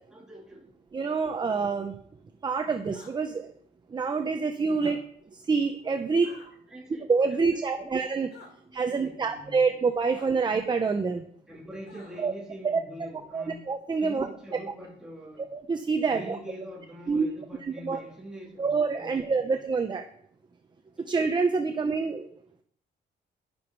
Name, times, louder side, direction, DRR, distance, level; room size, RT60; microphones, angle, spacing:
voice 1, 0.1-0.7 4.6-5.0 6.7-7.9 8.6-9.8 11.5-13.6 14.0-15.5 16.1-19.6 21.0-21.1 21.6-21.7, equal, 5° right, -4 dB, 3.5 m, -45 dB
voice 2, 0.9-2.0 2.4-3.5 3.9-5.0 5.3-6.3 7.1-8.3 8.7-11.2 12.2-12.3 12.6-12.8 13.3-14.3 15.5-16.4 17.1-17.3 17.8-18.0 18.6-20.0 21.1-22.3, right 4 dB, 25° right, 6 dB, 0.8 m, -26 dB
sound 1, 2.8-3.1 4.7-5.0 6.2-6.5 8.3-8.5 10.1-10.3 11.9-12.3, left 3 dB, 75° left, 4.7 m, -50 dB
11.5 x 10.5 x 4.7 m, 0.62 s
wide cardioid pair, 155°, 18 cm